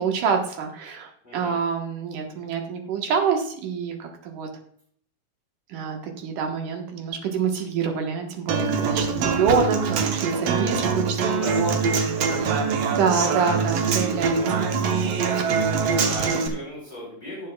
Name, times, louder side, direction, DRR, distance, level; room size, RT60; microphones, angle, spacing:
voice 1, 0.0-4.5 5.7-11.2 11.6-11.8 12.4-14.7, right 6 dB, 85° right, 3 dB, 2.9 m, -26 dB
voice 2, 1.2-1.6 7.8-7.9 11.2-11.7 12.0-13.3 13.6-14.0 15.2-17.5, left 1 dB, 15° left, -8 dB, 3.8 m, -39 dB
Human voice / Acoustic guitar, 8.5-16.5, right 5 dB, 65° right, 1.8 m, -23 dB
17.5 x 7.4 x 2.3 m, 0.63 s
omnidirectional pair, 3.6 m